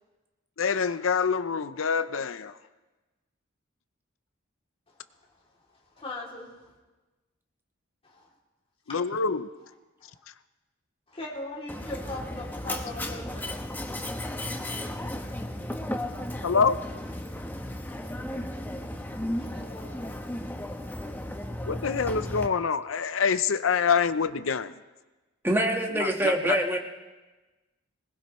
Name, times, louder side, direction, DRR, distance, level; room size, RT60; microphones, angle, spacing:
voice 1, 0.6-2.5 8.9-9.5 16.4-16.8 21.7-24.7 25.9-26.6, left 5 dB, 80° left, 13 dB, 0.6 m, -26 dB
voice 2, 6.0-6.7 8.0-8.3 10.0-10.1 11.1-13.8 14.5-16.2 17.2-17.5 18.0-18.2 19.2-20.2 20.6-20.7, left 1 dB, 30° left, -3 dB, 2.9 m, -41 dB
Mechanisms, 11.7-22.5, left 1 dB, 10° left, 0.9 m, -35 dB
voice 3, 25.4-26.8, right 1 dB, 10° right, 1 dB, 1.5 m, -25 dB
21.0 x 19.5 x 3.1 m, 1.2 s
head